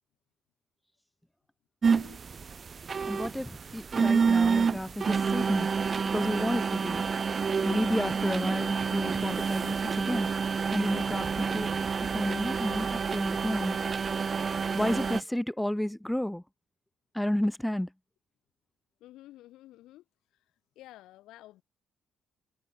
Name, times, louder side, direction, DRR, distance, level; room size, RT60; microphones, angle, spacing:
voice 1, 1.8-2.2 19.0-20.0 20.8-21.6, left 15 dB, 90° left, 5.6 m, -51 dB
sound 1, 1.8-15.2, right 5 dB, 40° right, 0.6 m, -28 dB
voice 2, 3.1-5.7 6.1-7.0 7.6-10.3 10.7-11.7 12.1-13.8 14.7-16.4 17.1-17.9, left 1 dB, 5° left, 1.2 m, -31 dB
cardioid pair, 90°, 0 cm